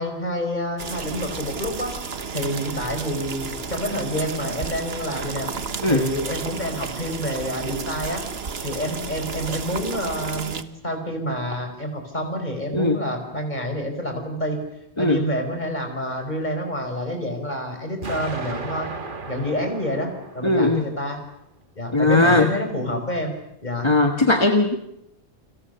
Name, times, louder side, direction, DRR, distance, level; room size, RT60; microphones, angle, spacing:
voice 1, 0.0-1.9 2.3-5.5 5.9-8.2 8.6-14.6 15.0-18.9 19.3-21.2 21.8-23.9, equal, 40° left, 5 dB, 5.4 m, -28 dB
sound 1, 0.8-10.6, right 5 dB, 65° right, 1.5 m, -32 dB
voice 2, 12.7-13.0 15.0-15.2 20.4-20.9 21.9-22.5 23.8-24.8, left 2 dB, 25° left, 5 dB, 1.4 m, -18 dB
Explosion, 18.0-21.0, right 3 dB, 50° right, 1.7 m, -35 dB
29.5 x 24.5 x 6.9 m, 0.80 s
omnidirectional pair, 1.1 m